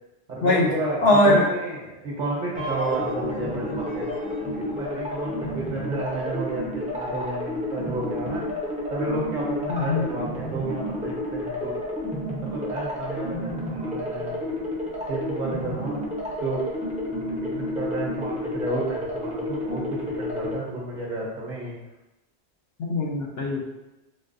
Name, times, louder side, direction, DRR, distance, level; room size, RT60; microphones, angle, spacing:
voice 1, 0.3-4.1 4.6-8.4 8.9-11.7 12.4-14.4 15.1-16.0 16.4-16.6 17.1-21.8, right 2 dB, 50° right, -4 dB, 0.9 m, -31 dB
voice 2, 1.0-1.4 9.7-10.1 22.8-23.6, left 1 dB, 70° left, -2 dB, 0.8 m, -20 dB
sound 1, 2.5-20.5, left 1 dB, 10° right, 0.4 m, -31 dB
3.9 x 2.2 x 2.5 m, 0.98 s
omnidirectional pair, 1.1 m